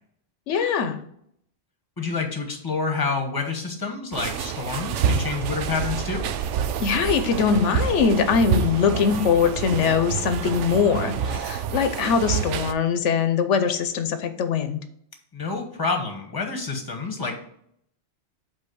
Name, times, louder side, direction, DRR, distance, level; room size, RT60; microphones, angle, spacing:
voice 1, 0.5-1.0 6.8-14.8, left 6 dB, 85° left, 9 dB, 1.0 m, -22 dB
voice 2, 2.0-6.3 15.3-17.4, left 4 dB, 20° left, 4 dB, 1.1 m, -28 dB
sound 1, 4.1-12.7, right 8 dB, 85° right, 0.9 m, -27 dB
5.5 x 4.4 x 6.2 m, 0.70 s
omnidirectional pair, 1.2 m